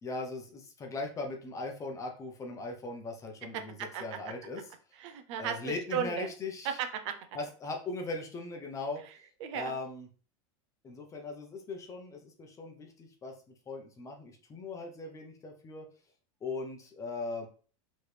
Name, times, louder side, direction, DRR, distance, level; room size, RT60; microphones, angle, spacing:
voice 1, 0.0-4.7 5.4-6.8 7.3-9.0 9.5-10.1 10.8-13.3 13.7-15.8 16.4-17.5, left 3 dB, 20° left, 2 dB, 0.9 m, -39 dB
voice 2, 3.5-4.0 5.0-6.3 6.8-7.2 9.4-9.7, right 8 dB, 65° right, 8 dB, 0.7 m, -35 dB
4.5 x 3.3 x 3.3 m, 0.39 s
supercardioid pair, 150°, 16 cm